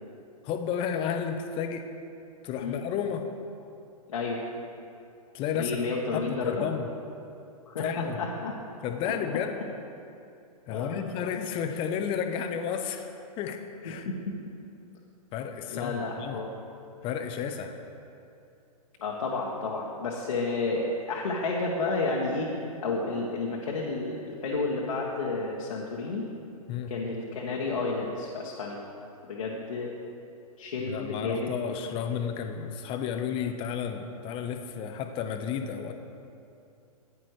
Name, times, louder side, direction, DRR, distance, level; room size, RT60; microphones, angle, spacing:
voice 1, 0.4-1.9 2.4-3.3 5.3-5.8 6.1-6.9 7.8-8.2 8.8-9.6 10.7-13.1 13.4-14.1 15.3-16.4 17.0-17.8 26.7-26.9 30.9-35.9, left 7 dB, 25° left, 6 dB, 0.8 m, -32 dB
voice 2, 5.5-6.6 7.7-8.5 10.7-11.0 14.0-14.1 15.7-16.5 19.0-26.3 26.9-28.8 29.2-29.9 30.6-31.5, left 3 dB, 65° left, -3 dB, 1.4 m, -31 dB
14.5 x 9.9 x 3.2 m, 2.7 s
figure-of-eight pair, 110°, 20 cm